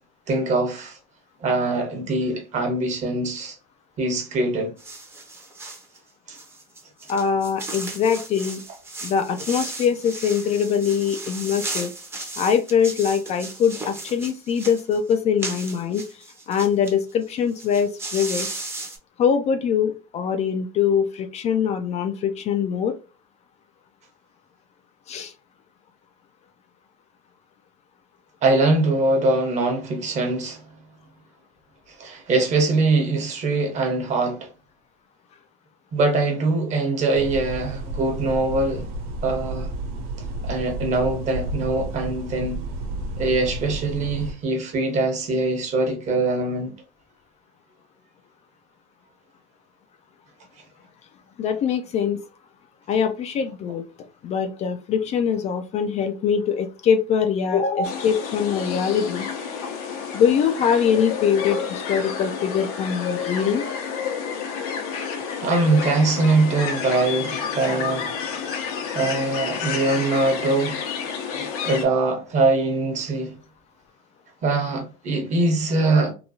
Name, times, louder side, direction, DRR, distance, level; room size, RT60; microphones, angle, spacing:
voice 1, 0.3-0.9 1.4-3.5 4.0-4.7 28.4-30.6 32.0-34.5 35.9-38.8 39.2-39.7 40.4-42.6 43.2-46.7 65.4-68.2 68.9-70.8 71.6-73.3 74.4-76.1, right 2 dB, 40° right, 1.1 m, -22 dB
sound 1, 4.8-5.9 6.3-16.9 17.2-17.3 17.5-19.0, right 2 dB, 15° right, 0.7 m, -35 dB
voice 2, 7.1-8.6 9.0-11.9 12.4-16.0 16.5-18.5 19.2-22.9 25.1-25.3 51.4-52.2 52.9-53.8 54.2-59.3 60.1-63.6, left 7 dB, 40° left, 0.4 m, -23 dB
sound 2, 37.1-44.3, right 2 dB, 60° right, 0.6 m, -31 dB
sound 3, 57.8-71.8, left 6 dB, 80° left, 0.8 m, -30 dB
2.9 x 2.2 x 2.6 m
supercardioid pair, 110°, 18 cm